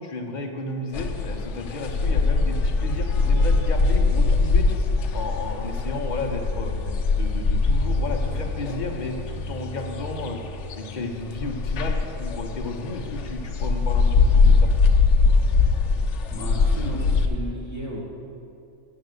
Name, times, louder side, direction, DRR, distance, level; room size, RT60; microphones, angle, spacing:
voice 1, 0.0-4.7 5.1-6.7 7.1-10.4 10.8-14.7, left 2 dB, 40° left, 2 dB, 0.9 m, -33 dB
sound 1, 0.9-17.3, left 4 dB, 65° left, 0.9 m, -22 dB
voice 2, 16.3-18.0, right 1 dB, 10° right, -6 dB, 1.9 m, -34 dB
7.6 x 6.6 x 8.0 m, 2.7 s
omnidirectional pair, 1.4 m